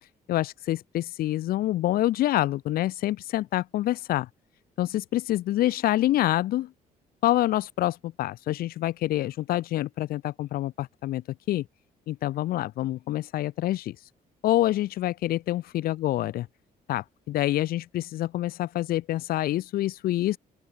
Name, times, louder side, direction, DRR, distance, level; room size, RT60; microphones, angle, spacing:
voice 1, 0.3-4.3 4.8-6.7 7.2-11.6 12.1-14.0 14.4-16.5 16.9-20.4, left 14 dB, 70° left, 0.9 m, -27 dB
open air
cardioid pair, 160°, 16 cm